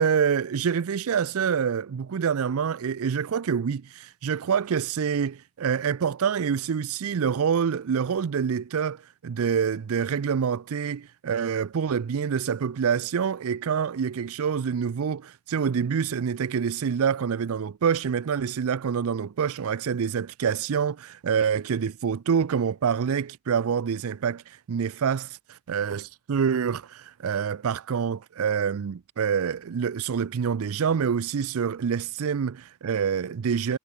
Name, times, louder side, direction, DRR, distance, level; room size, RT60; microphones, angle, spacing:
voice 1, 0.0-33.8, right 7 dB, 65° right, 0.4 m, -26 dB
head